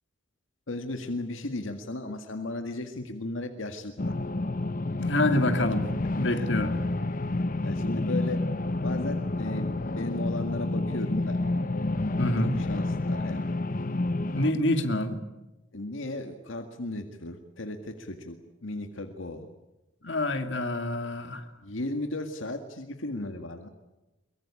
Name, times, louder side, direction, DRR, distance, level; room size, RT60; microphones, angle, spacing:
voice 1, 0.7-4.2 6.3-6.5 7.6-8.4 8.8-11.4 12.4-13.5 15.7-18.4 18.6-19.5 21.6-23.7, left 2 dB, 80° left, 5 dB, 1.9 m, -35 dB
sound 1, 4.0-14.5, left 2 dB, 45° left, 0.9 m, -29 dB
voice 2, 5.0-5.9 6.1-6.7 12.2-12.5 14.3-15.2 20.0-21.4, left 1 dB, 60° left, 6 dB, 2.5 m, -26 dB
23.0 x 23.0 x 8.8 m, 1.0 s
head